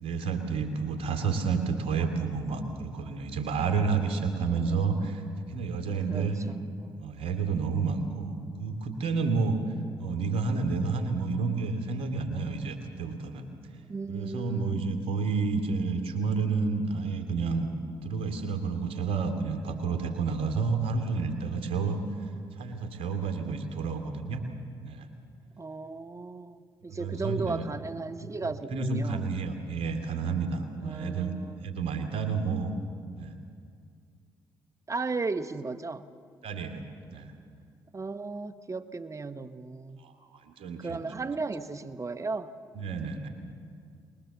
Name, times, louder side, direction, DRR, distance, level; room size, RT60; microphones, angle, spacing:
voice 1, 0.0-5.2 5.5-6.4 7.0-9.6 10.0-13.5 14.1-17.7 18.0-22.0 22.6-24.4 24.8-25.1 26.9-27.7 28.7-31.3 31.6-32.7 33.2-33.3 36.4-36.8 37.1-37.3 40.0-41.3 42.7-43.3, right 4 dB, 70° right, 6 dB, 2.5 m, -30 dB
voice 2, 6.1-7.2 13.9-14.8 25.6-29.3 30.8-31.6 34.9-36.1 37.9-40.0 40.8-42.5, right 3 dB, 30° right, 10 dB, 1.2 m, -35 dB
23.0 x 20.5 x 7.2 m, 2.2 s
hypercardioid pair, 50°, 10 cm